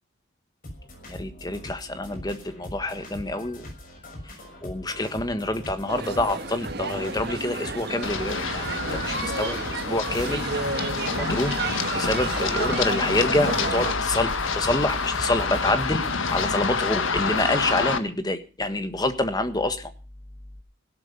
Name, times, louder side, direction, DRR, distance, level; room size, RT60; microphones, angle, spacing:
sound 1, 0.6-16.6, left 1 dB, 40° left, 6.2 m, -42 dB
voice 1, 1.1-3.7 4.6-10.5 11.1-11.6 11.9-19.9, left 2 dB, 20° left, 9 dB, 1.4 m, -27 dB
sound 2, 5.9-14.0, right 3 dB, 50° right, 1.6 m, -32 dB
Run, 8.0-18.0, left 4 dB, 75° left, 1.6 m, -28 dB
17.0 x 12.0 x 5.5 m, 0.36 s
head